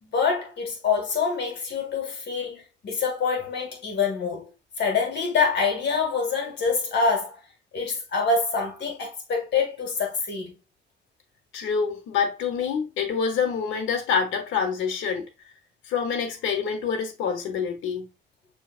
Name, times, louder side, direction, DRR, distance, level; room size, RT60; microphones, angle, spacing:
voice 1, 0.0-4.5 4.8-7.4 7.7-10.5, left 5 dB, 60° left, 1.8 m, -26 dB
voice 2, 11.5-15.2 15.9-18.1, left 6 dB, 85° left, 0.9 m, -26 dB
6.2 x 2.8 x 2.4 m
cardioid pair, 90°, 20 cm